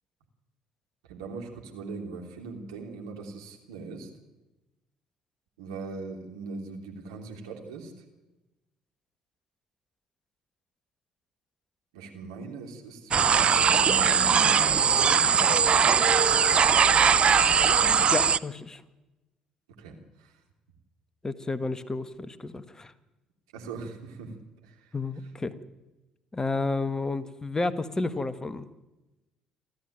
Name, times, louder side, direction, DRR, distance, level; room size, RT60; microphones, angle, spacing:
voice 1, 1.1-4.1 5.6-8.0 11.9-14.3 14.7-15.3 19.8-20.4 23.5-24.3 24.6-24.9, right 4 dB, 75° right, 2 dB, 3.3 m, -40 dB
sound 1, 13.1-18.4, right 6 dB, 40° right, 0.7 m, -20 dB
voice 2, 18.1-18.8 21.2-22.9 24.9-25.5 26.3-28.7, left 3 dB, 20° left, 13 dB, 1.6 m, -31 dB
27.5 x 13.5 x 9.2 m, 1.0 s
figure-of-eight pair, 50°, 3 cm